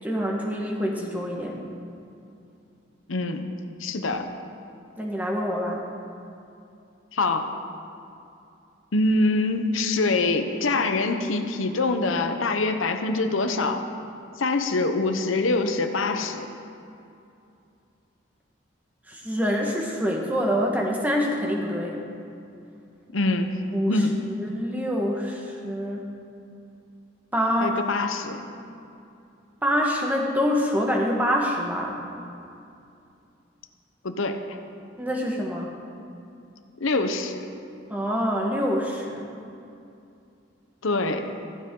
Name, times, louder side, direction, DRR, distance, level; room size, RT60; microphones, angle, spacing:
voice 1, 0.0-1.6 5.0-5.9 19.1-22.0 23.7-24.0 24.4-26.1 27.3-27.8 29.6-32.0 35.0-35.7 37.9-39.3, equal, 10° right, -1 dB, 1.4 m, -26 dB
voice 2, 3.1-3.5 3.8-4.3 7.1-7.5 8.9-13.8 14.4-16.5 23.1-23.5 23.8-24.1 27.6-28.4 34.0-34.4 36.8-37.5 40.8-41.3, left 2 dB, 85° left, 7 dB, 0.9 m, -24 dB
15.0 x 14.5 x 3.8 m, 2.6 s
head